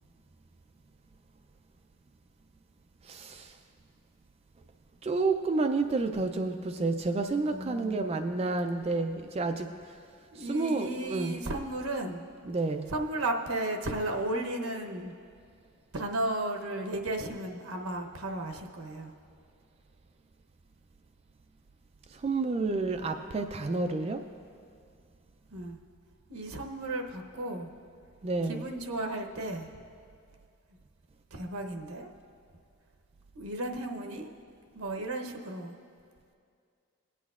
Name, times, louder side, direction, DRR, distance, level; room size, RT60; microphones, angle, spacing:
voice 1, 3.0-3.6 5.0-9.7 10.4-11.3 12.5-12.9 22.1-24.2 28.2-28.6, right 3 dB, 30° right, 7 dB, 0.3 m, -30 dB
voice 2, 7.5-8.1 10.3-12.3 12.9-15.1 15.9-19.1 25.5-25.8 26.3-27.7 28.4-29.8 31.3-32.1 33.3-34.3 34.7-35.7, right 1 dB, 80° right, 2 dB, 0.9 m, -34 dB
21.0 x 8.3 x 2.4 m, 2.3 s
head